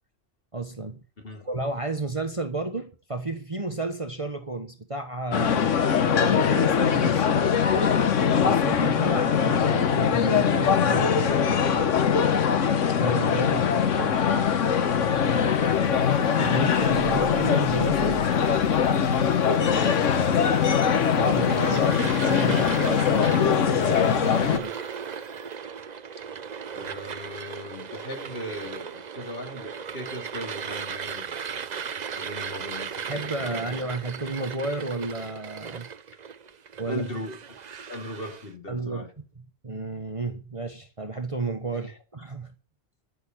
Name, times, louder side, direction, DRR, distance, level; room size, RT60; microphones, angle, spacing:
voice 1, 0.5-1.0 1.4-5.7 6.0-8.2 8.4-11.4 13.0-14.2 16.4-18.2 21.0-24.8 33.1-35.9 36.8-37.0 38.7-39.1 39.6-42.5, right 3 dB, 25° right, 1.2 m, -32 dB
voice 2, 1.2-1.5 11.5-12.4 15.3-15.7 17.1-17.3 19.3-20.5 26.7-31.3 31.9-33.7 36.9-37.4 37.9-39.1 41.7-42.0, left 1 dB, 45° left, 2.6 m, -38 dB
sound 1, 5.3-24.6, left 7 dB, 75° left, 1.4 m, -22 dB
sound 2, 13.5-25.6, right 3 dB, 80° right, 2.2 m, -44 dB
sound 3, 21.2-38.5, right 7 dB, 45° right, 0.6 m, -37 dB
12.5 x 6.9 x 8.9 m
omnidirectional pair, 1.3 m